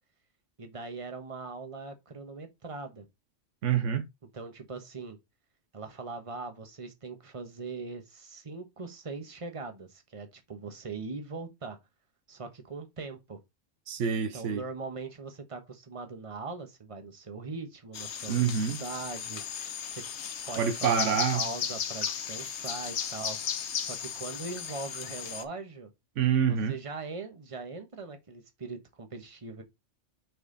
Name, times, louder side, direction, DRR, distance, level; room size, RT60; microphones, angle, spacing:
voice 1, 0.6-3.1 4.3-5.2 5.7-11.8 12.3-13.4 14.3-19.4 19.9-20.0 20.5-23.4 23.8-25.9 26.5-29.6, right 4 dB, 30° right, 1.2 m, -41 dB
voice 2, 3.6-4.0 13.9-14.6 18.3-18.8 20.6-21.4 26.2-26.8, right 7 dB, 80° right, 1.1 m, -26 dB
sound 1, 17.9-25.4, left 8 dB, 70° left, 1.1 m, -35 dB
6.6 x 4.2 x 3.9 m
omnidirectional pair, 1.2 m